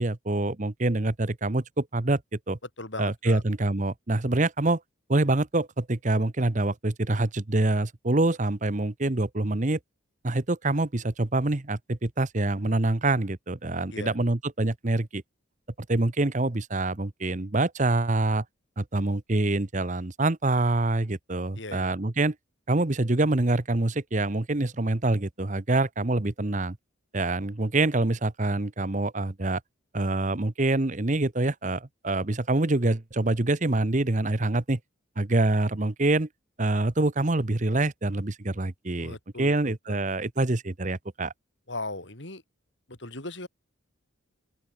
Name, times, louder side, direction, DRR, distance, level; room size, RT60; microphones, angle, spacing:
voice 1, 0.0-2.2 2.5-2.6 3.0-4.8 5.1-9.8 10.2-15.2 15.9-18.4 18.8-22.3 22.7-26.8 27.1-29.6 29.9-34.8 35.2-36.3 36.6-41.3, right 2 dB, 35° right, 1.0 m, -26 dB
voice 2, 2.8-3.4 13.9-14.1 21.6-21.9 39.0-40.0 41.7-42.4 42.9-43.5, left 2 dB, 65° left, 5.2 m, -38 dB
open air
head